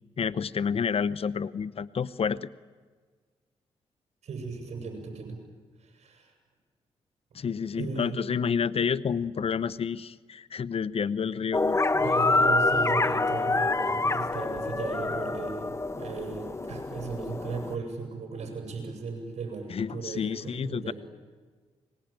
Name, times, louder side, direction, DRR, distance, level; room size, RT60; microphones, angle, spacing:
voice 1, 0.2-2.5 7.3-11.8 19.7-20.9, left 6 dB, 55° left, 17 dB, 0.9 m, -29 dB
voice 2, 4.2-5.4 5.8-6.3 7.7-8.2 11.9-20.9, right 4 dB, 70° right, 4 dB, 7.8 m, -37 dB
sound 1, 11.5-17.8, left 2 dB, 25° left, 1.1 m, -26 dB
27.0 x 23.0 x 9.0 m, 1.5 s
cardioid pair, 60°, 12 cm